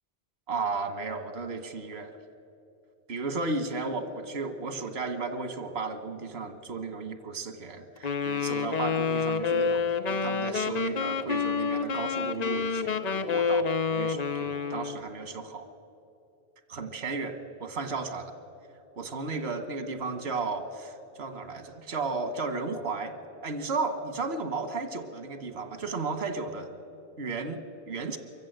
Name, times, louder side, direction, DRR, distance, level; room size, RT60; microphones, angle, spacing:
voice 1, 0.5-2.2 3.1-15.7 16.7-18.3 19.0-23.1 23.4-26.7 27.2-28.2, right 4 dB, 85° right, 9 dB, 1.5 m, -34 dB
Wind instrument woodwind instrument, 8.0-15.0, left 5 dB, 45° left, 0.8 m, -28 dB
23.5 x 15.0 x 7.9 m, 2.7 s
omnidirectional pair, 1.0 m